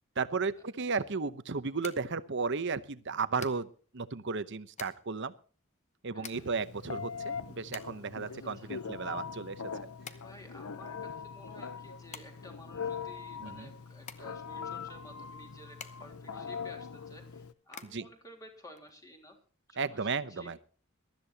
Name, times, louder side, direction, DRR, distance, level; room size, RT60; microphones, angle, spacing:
voice 1, 0.2-3.7 3.9-5.3 6.0-9.6 13.4-13.7 17.9-18.0 19.8-20.6, right 4 dB, 55° right, 13 dB, 0.9 m, -34 dB
sound 1, 0.5-19.4, left 6 dB, 35° left, 1.0 m, -53 dB
voice 2, 6.1-6.4 8.3-8.7 10.1-19.4 19.7-20.6, left 1 dB, 15° left, 2 dB, 3.3 m, -53 dB
Telephone, 6.3-17.5, left 6 dB, 85° left, 0.8 m, -42 dB
22.0 x 13.5 x 2.9 m, 0.40 s
head